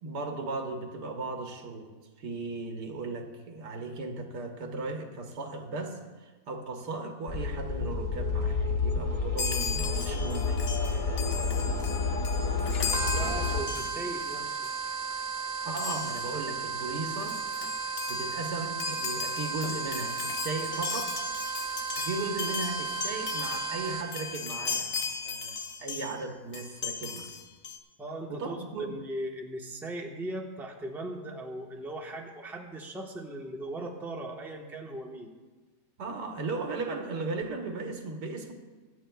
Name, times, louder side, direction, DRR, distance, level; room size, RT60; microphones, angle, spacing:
voice 1, 0.0-1.9 2.2-12.2 15.6-17.4 18.1-21.1 22.0-27.3 28.3-29.0 36.0-38.5, right 3 dB, 80° right, 3 dB, 1.8 m, -36 dB
sound 1, 7.3-13.6, left 4 dB, 35° left, 0.6 m, -30 dB
Chime, 9.4-14.3 14.6-14.9 15.8-16.4 16.9-17.0 17.2-26.2 26.5-27.8, left 5 dB, 50° left, 1.1 m, -36 dB
sound 2, 12.9-24.3, right 5 dB, 40° right, 1.0 m, -35 dB
voice 2, 13.1-14.6 28.0-35.3, right 1 dB, ahead, 0 dB, 0.9 m, -38 dB
24.5 x 8.5 x 2.3 m, 1.3 s
omnidirectional pair, 1.7 m